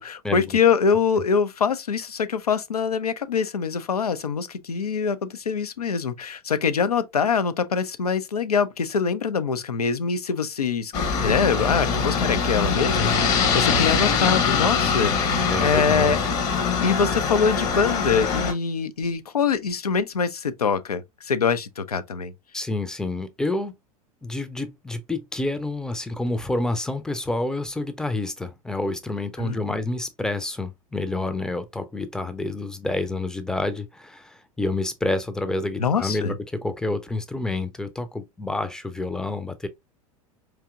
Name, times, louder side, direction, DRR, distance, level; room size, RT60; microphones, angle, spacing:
voice 1, 0.0-16.2 16.8-22.3 29.4-29.6 35.8-36.3, left 6 dB, 80° left, 0.5 m, -24 dB
Aircraft, 10.9-18.5, left 5 dB, 40° left, 0.9 m, -23 dB
voice 2, 15.5-16.2 22.5-23.7 24.2-39.7, left 2 dB, 5° left, 0.5 m, -28 dB
4.7 x 2.9 x 2.3 m
figure-of-eight pair, 85°, 19 cm